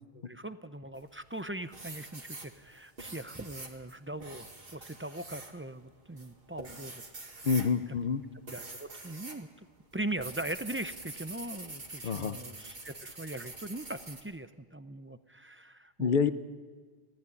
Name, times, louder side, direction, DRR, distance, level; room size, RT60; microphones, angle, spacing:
voice 1, 0.1-4.5 4.7-7.0 7.4-7.6 8.5-9.7 9.9-16.2, right 1 dB, 15° right, 11 dB, 0.5 m, -40 dB
sound 1, 1.0-1.4 1.7-9.4 9.7-14.2, right 2 dB, 65° right, 2.3 m, -45 dB
voice 2, 7.4-8.2 12.0-12.4 16.0-16.3, left 6 dB, 55° left, 13 dB, 0.9 m, -27 dB
18.0 x 15.0 x 9.9 m, 1.5 s
omnidirectional pair, 1.0 m